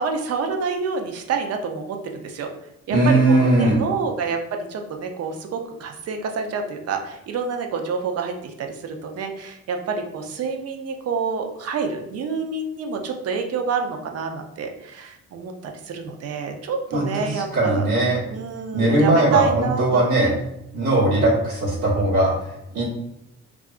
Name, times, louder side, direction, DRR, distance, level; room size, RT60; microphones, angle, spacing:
voice 1, 0.0-2.5 2.9-17.9 18.3-20.3 21.0-21.1, right 5 dB, 55° right, 4 dB, 0.5 m, -28 dB
voice 2, 2.9-3.8 16.9-18.2 18.7-20.3 20.7-22.8, right 2 dB, 90° right, -9 dB, 1.0 m, -19 dB
2.7 x 2.4 x 2.4 m, 0.82 s
cardioid pair, 90°, 30 cm